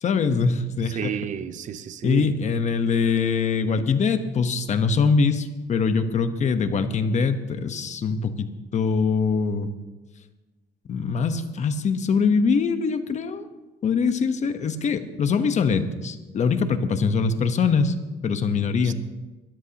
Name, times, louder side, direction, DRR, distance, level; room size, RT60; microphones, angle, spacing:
voice 1, 0.0-1.1 2.0-9.7 10.9-13.5 13.8-17.9 18.2-18.9, left 5 dB, 45° left, 1.1 m, -23 dB
voice 2, 0.8-2.3 18.8-18.9, right 8 dB, 45° right, 0.7 m, -31 dB
21.5 x 13.5 x 3.0 m
cardioid pair, 110°, 17 cm